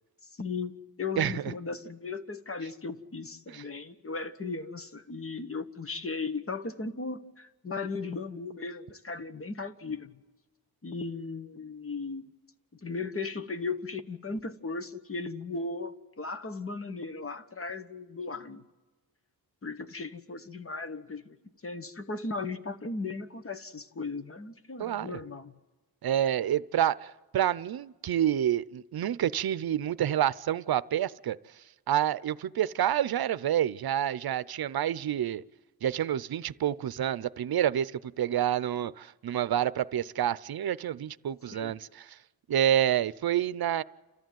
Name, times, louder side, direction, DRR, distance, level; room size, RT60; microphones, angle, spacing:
voice 1, 0.4-10.2 10.8-12.2 12.7-18.6 19.6-21.4 21.6-25.6 41.5-41.8, left 4 dB, 35° left, 1.3 m, -37 dB
voice 2, 1.2-1.5 3.5-3.6 24.8-25.2 26.0-31.4 31.9-35.4 35.8-42.1 42.5-43.8, right 11 dB, 70° right, 0.7 m, -28 dB
29.5 x 14.0 x 9.3 m
wide cardioid pair, 125°, 38 cm